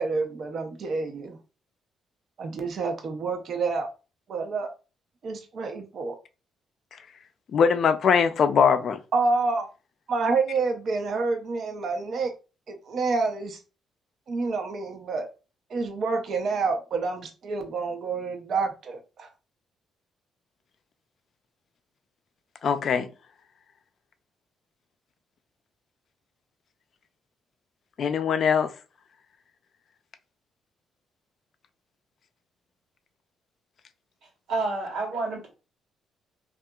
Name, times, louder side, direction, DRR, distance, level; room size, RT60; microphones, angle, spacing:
voice 1, 0.0-1.4 2.4-3.9 4.3-4.7 5.2-6.2 9.1-9.7 10.1-12.3 12.7-13.6 14.3-15.3 15.7-19.3, right 4 dB, 60° right, 0.5 m, -28 dB
voice 2, 7.5-9.0 22.6-23.1 28.0-28.7, left 6 dB, 60° left, 0.3 m, -21 dB
voice 3, 34.5-35.5, right 3 dB, 80° right, 1.2 m, -29 dB
2.8 x 2.3 x 2.2 m
cardioid pair, 90°, 0 cm